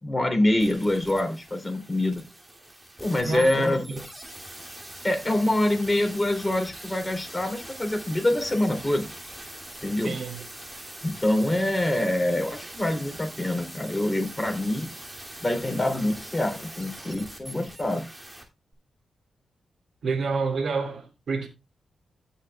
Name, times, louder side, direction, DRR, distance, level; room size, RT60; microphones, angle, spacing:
voice 1, 0.0-2.3 3.0-4.0 5.0-9.1 9.8-10.2 11.0-14.9 15.4-18.1, left 1 dB, 20° left, 3.7 m, -25 dB
sound 1, 0.6-18.4 18.7-18.8, right 1 dB, 10° right, 2.9 m, -42 dB
voice 2, 3.2-4.0 10.0-10.4 20.0-21.5, right 4 dB, 65° right, 2.6 m, -29 dB
17.0 x 5.9 x 2.4 m
cardioid pair, 55°, 0 cm